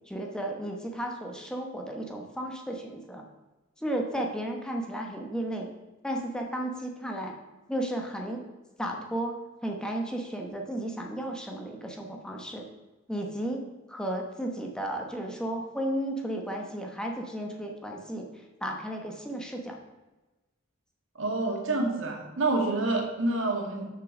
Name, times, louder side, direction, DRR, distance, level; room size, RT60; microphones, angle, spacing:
voice 1, 0.1-3.3 3.8-5.7 6.0-7.4 7.7-8.4 8.8-12.7 13.1-13.6 13.9-18.3 18.6-19.8, right 1 dB, 5° left, 1 dB, 1.0 m, -33 dB
voice 2, 21.2-23.9, right 2 dB, 80° right, 0 dB, 2.0 m, -28 dB
6.6 x 6.4 x 5.9 m, 1.1 s
head